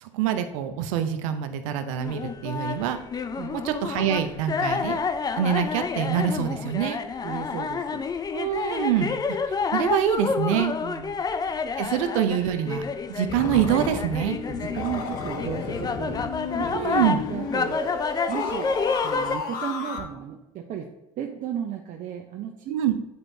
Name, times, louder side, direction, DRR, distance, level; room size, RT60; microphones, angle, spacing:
voice 1, 0.0-3.0 3.5-5.0 5.4-7.0 8.3-9.2 9.7-10.7 11.8-14.4 16.6-17.2 22.7-22.9, right 9 dB, 80° right, 9 dB, 0.7 m, -25 dB
sound 1, 2.0-19.4, left 5 dB, 25° left, 0.5 m, -29 dB
voice 2, 7.2-8.0 10.8-11.2 14.5-16.2 17.3-17.8 18.3-18.7 19.0-20.9 21.2-22.7, right 9 dB, 50° right, 2 dB, 0.8 m, -34 dB
sound 2, 13.3-20.0, left 4 dB, 60° left, 1.1 m, -32 dB
9.6 x 4.5 x 2.7 m, 0.95 s
supercardioid pair, 85°, 17 cm